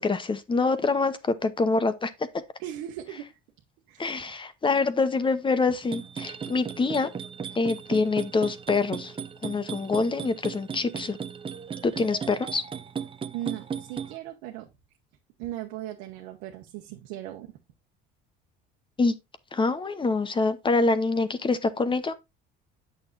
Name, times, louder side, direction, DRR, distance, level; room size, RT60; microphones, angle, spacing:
voice 1, 0.0-2.1 4.0-7.1 7.5-9.1 9.4-11.2 11.8-12.6 19.0-19.2 19.5-22.1, left 3 dB, 25° left, 0.8 m, -25 dB
voice 2, 2.6-3.4 3.9-4.4 13.3-14.7 15.4-17.6, right 13 dB, 90° right, 1.0 m, -38 dB
sound 1, 5.8-14.2, right 7 dB, 25° right, 0.6 m, -37 dB
8.6 x 6.4 x 2.6 m
cardioid pair, 100°, 21 cm